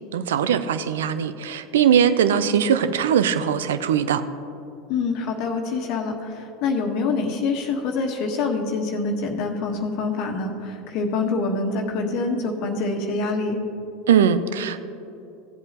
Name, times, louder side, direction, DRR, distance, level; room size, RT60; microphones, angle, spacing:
voice 1, 0.1-4.2 14.1-14.8, right 8 dB, 80° right, 12 dB, 0.5 m, -20 dB
voice 2, 4.9-13.6, left 3 dB, 60° left, 3 dB, 1.3 m, -25 dB
16.5 x 7.9 x 3.0 m, 2.8 s
hypercardioid pair, 90°, 0 cm